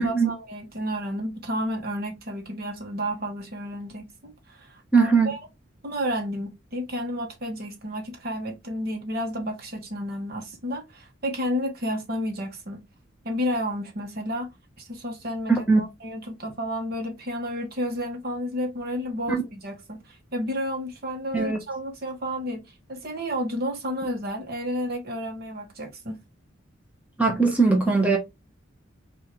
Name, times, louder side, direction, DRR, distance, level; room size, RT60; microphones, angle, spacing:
voice 1, 0.0-5.4 5.8-12.8 13.2-14.5 14.8-26.2, equal, 50° right, 1.3 m, -31 dB
voice 2, 4.9-5.3 15.5-15.8 19.3-19.4 21.3-21.6 27.2-28.2, right 4 dB, 5° right, 1.2 m, -20 dB
5.6 x 2.7 x 3.3 m
head